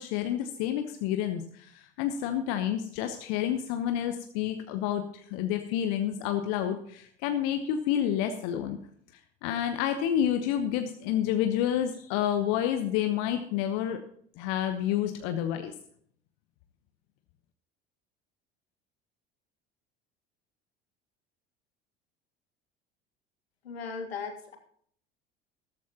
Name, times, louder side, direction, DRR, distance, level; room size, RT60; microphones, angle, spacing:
voice 1, 0.0-8.8 9.4-14.0 14.4-15.7, left 10 dB, 55° left, 7 dB, 1.0 m, -29 dB
voice 2, 23.7-24.6, left 5 dB, 80° left, 5 dB, 1.7 m, -37 dB
13.5 x 13.0 x 2.9 m, 0.62 s
figure-of-eight pair, 65°, 31 cm